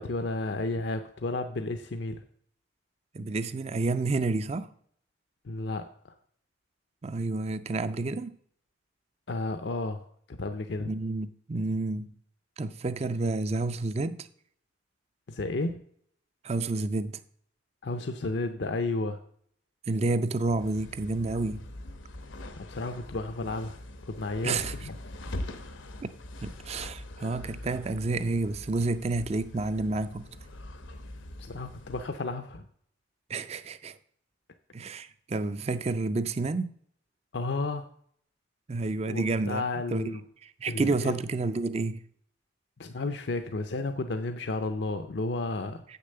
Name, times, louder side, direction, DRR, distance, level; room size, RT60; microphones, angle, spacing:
voice 1, 0.0-2.2 5.4-6.1 9.3-10.9 15.3-15.8 17.8-19.2 22.5-24.9 31.1-32.7 37.3-37.9 39.1-40.2 40.7-41.2 42.8-45.8, left 2 dB, 60° left, 0.6 m, -32 dB
voice 2, 3.1-4.7 7.0-8.4 10.8-12.1 12.6-14.3 16.4-17.2 19.9-21.7 24.4-24.7 26.0-26.1 26.4-30.3 33.3-34.0 34.7-36.7 38.7-39.6 39.9-40.1 40.4-42.0, right 3 dB, 30° right, 0.4 m, -30 dB
sound 1, 20.4-32.2, left 1 dB, 80° left, 1.0 m, -43 dB
7.6 x 6.7 x 6.6 m
head